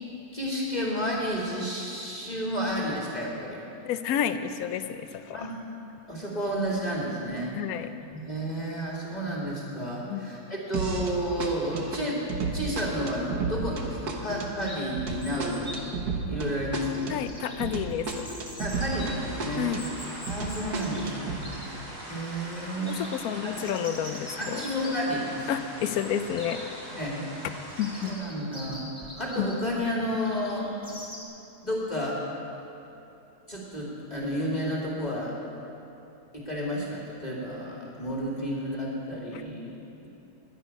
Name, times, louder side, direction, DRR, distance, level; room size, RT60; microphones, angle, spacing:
voice 1, 0.3-3.6 5.3-5.5 6.1-7.6 8.1-12.2 12.5-15.7 16.3-16.9 18.6-19.7 20.2-21.8 22.1-23.0 23.4-23.6 24.4-25.5 27.0-27.2 28.0-28.9 29.2-30.7 31.6-32.2 33.5-35.4 36.3-40.1, equal, 25° left, -4 dB, 1.9 m, -31 dB
voice 2, 3.8-5.5 7.5-7.9 10.1-10.5 17.1-18.3 19.6-19.8 22.9-24.7 25.5-26.6 27.8-28.1 29.4-29.5 39.3-39.4, left 9 dB, 70° left, 11 dB, 1.0 m, -30 dB
sound 1, 10.7-11.1 11.4-19.1 19.4-21.4, right 4 dB, 70° right, 1.7 m, -33 dB
Chirp tweet, 14.6-31.2, equal, 5° right, 2.1 m, -45 dB
sound 2, 18.7-28.1, right 1 dB, 55° right, 3.4 m, -42 dB
20.5 x 8.3 x 5.5 m, 3.0 s
omnidirectional pair, 1.8 m